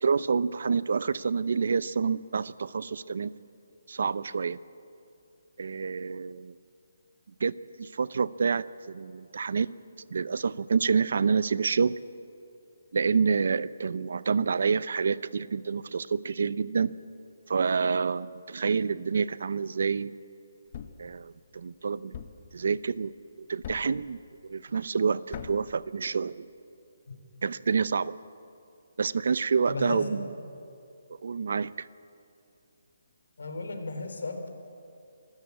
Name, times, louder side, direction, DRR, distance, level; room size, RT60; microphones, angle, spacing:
voice 1, 0.0-3.3 3.9-4.6 5.6-6.5 7.4-9.7 10.1-12.0 12.9-16.9 17.5-20.1 21.0-22.1 22.5-23.1 23.5-24.2 24.5-26.5 27.4-28.1 29.0-30.3 31.2-31.9, right 5 dB, 55° right, 18 dB, 0.6 m, -28 dB
Thump thud, 20.7-21.1 22.1-22.5 23.6-24.0 25.3-25.7, left 8 dB, 25° left, 0.9 m, -41 dB
voice 2, 29.7-30.3 33.4-34.5, left 3 dB, 80° left, 6 dB, 3.5 m, -34 dB
25.5 x 13.0 x 8.3 m, 2.6 s
hypercardioid pair, 175°, 0 cm